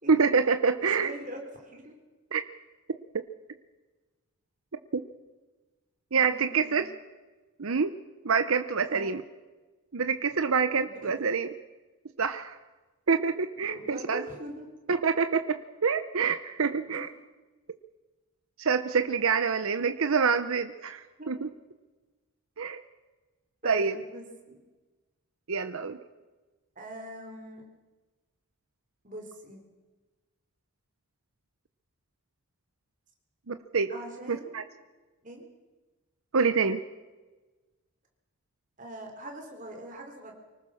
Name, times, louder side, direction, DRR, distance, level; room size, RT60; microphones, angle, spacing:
voice 1, 0.1-1.1 2.3-2.4 4.9-5.0 6.1-6.9 7.6-7.9 8.2-9.2 9.9-11.5 12.2-12.6 13.1-14.2 14.9-17.1 18.6-21.5 22.6-22.8 23.6-23.9 25.5-26.0 33.5-33.9 34.3-34.6 36.3-36.8, right 5 dB, 70° right, 9 dB, 0.7 m, -26 dB
voice 2, 0.8-2.0 6.3-6.9 8.9-9.1 10.7-11.3 13.6-14.7 16.9-17.0 21.2-21.3 23.6-24.6 26.8-27.6 29.0-29.6 33.9-34.6 35.2-35.4 38.8-40.3, right 1 dB, 35° right, 3 dB, 3.8 m, -42 dB
24.5 x 19.0 x 6.5 m, 1.2 s
head